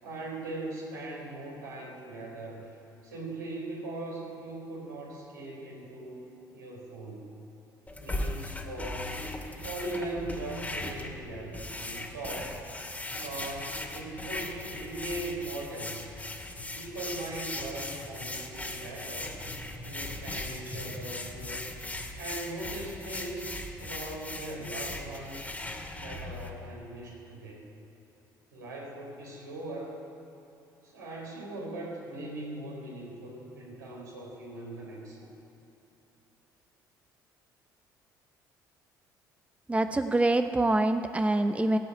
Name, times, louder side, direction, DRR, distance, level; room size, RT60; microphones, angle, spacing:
voice 1, 0.0-2.7 3.0-6.3 6.5-7.4 8.0-9.2 9.6-12.7 13.2-16.1 16.7-19.3 19.8-21.6 22.2-23.5 23.8-25.5 26.0-27.7 28.5-30.0 30.8-35.3, right 2 dB, 80° right, -4 dB, 4.3 m, -40 dB
sound 1, 7.9-26.5, left 2 dB, 15° left, 2.3 m, -38 dB
voice 2, 39.7-41.8, right 2 dB, 15° right, 9 dB, 0.8 m, -25 dB
17.5 x 8.4 x 9.7 m, 2.9 s
figure-of-eight pair, 50°, 10 cm